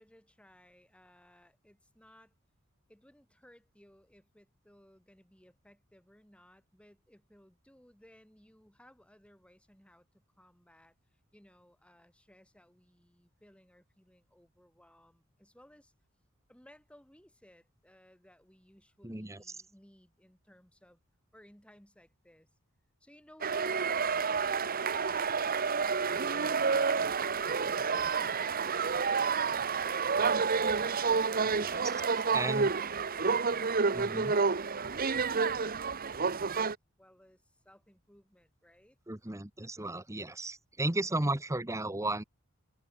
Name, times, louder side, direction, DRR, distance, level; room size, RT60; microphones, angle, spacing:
voice 1, 0.0-2.3 2.9-11.0 11.3-15.9 16.5-21.0 21.3-22.5 23.0-23.8 24.0-25.9 37.0-39.0, equal, 5° left, 7.0 m, -61 dB
voice 2, 19.0-19.4 31.4-31.8 32.3-32.7 33.9-34.3 39.1-42.2, right 2 dB, 15° right, 1.2 m, -34 dB
sound 1, 23.4-36.8, right 5 dB, 45° right, 1.1 m, -29 dB
head